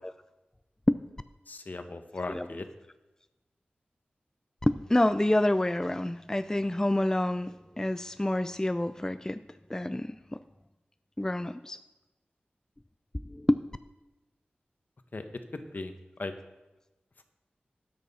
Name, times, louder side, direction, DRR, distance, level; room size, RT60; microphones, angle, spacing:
voice 1, 1.5-2.7 15.1-15.2 15.5-15.9 16.2-16.3, left 2 dB, 55° left, 7 dB, 1.1 m, -37 dB
voice 2, 2.3-2.6 4.6-9.4 9.7-10.4 11.2-11.8 13.2-13.6, left 1 dB, 15° left, 12 dB, 0.4 m, -28 dB
12.5 x 8.8 x 4.2 m, 1.1 s
cardioid pair, 50°, 4 cm